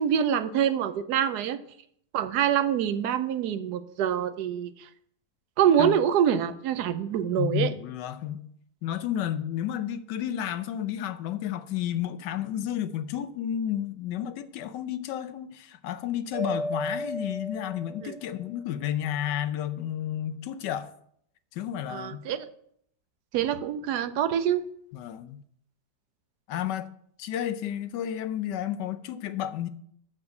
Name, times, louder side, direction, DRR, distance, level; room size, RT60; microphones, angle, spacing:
voice 1, 0.0-1.6 2.1-4.9 5.6-7.7 18.0-18.1 21.9-22.5 23.3-24.6, right 9 dB, 70° right, 1.1 m, -25 dB
voice 2, 7.4-8.4 8.8-20.9 21.5-22.2 24.9-25.4 26.5-26.9 27.2-29.7, left 10 dB, 75° left, 1.3 m, -31 dB
Mallet percussion, 16.3-18.4, equal, 20° right, 4.0 m, -34 dB
6.5 x 6.0 x 6.4 m
omnidirectional pair, 1.9 m